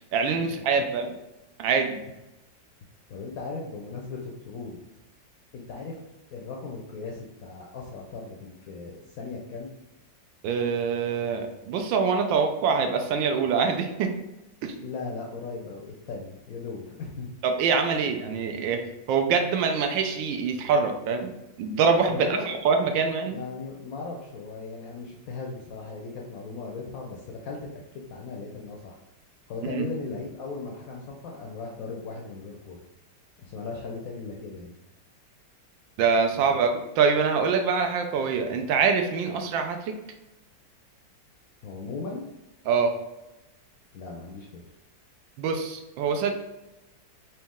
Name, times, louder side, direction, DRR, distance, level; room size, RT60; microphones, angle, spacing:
voice 1, 0.1-1.1 1.6-2.0 10.4-14.1 14.6-14.7 17.4-18.8 19.1-23.4 29.6-29.8 36.0-39.9 42.7-42.9 45.4-46.3, right 5 dB, 80° right, 5 dB, 1.3 m, -24 dB
voice 2, 3.1-4.8 5.5-6.0 6.3-9.7 14.8-17.3 17.9-18.1 22.1-22.6 23.2-29.0 29.5-32.8 33.4-34.8 36.5-36.6 41.6-42.3 43.9-44.6, left 4 dB, 70° left, -1 dB, 0.8 m, -37 dB
4.1 x 2.9 x 3.6 m, 0.95 s
omnidirectional pair, 2.0 m